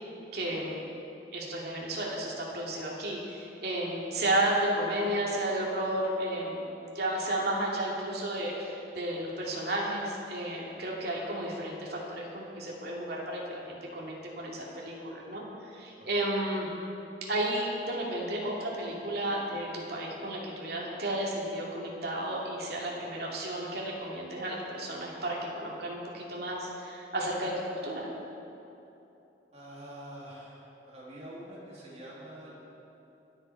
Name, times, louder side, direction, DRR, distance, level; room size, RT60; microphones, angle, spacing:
voice 1, 0.3-0.7 1.3-6.6 6.9-15.4 15.7-16.7 17.2-28.1, right 1 dB, 65° right, -3 dB, 2.6 m, -33 dB
voice 2, 29.5-32.5, right 1 dB, 40° right, -6 dB, 3.2 m, -46 dB
22.5 x 8.1 x 4.7 m, 3.0 s
head